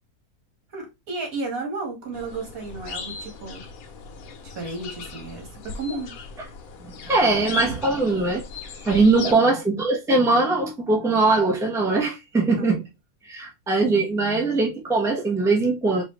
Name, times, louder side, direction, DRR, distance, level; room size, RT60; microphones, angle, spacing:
voice 1, 0.7-3.7 4.4-6.1 9.2-9.4 12.6-12.7, right 3 dB, 70° right, 1.9 m, -33 dB
sound 1, 2.1-9.3, left 5 dB, 80° left, 1.2 m, -38 dB
voice 2, 6.8-8.4 8.8-12.8 13.2-16.0, right 3 dB, 5° right, 0.7 m, -21 dB
4.2 x 2.6 x 3.0 m
omnidirectional pair, 1.5 m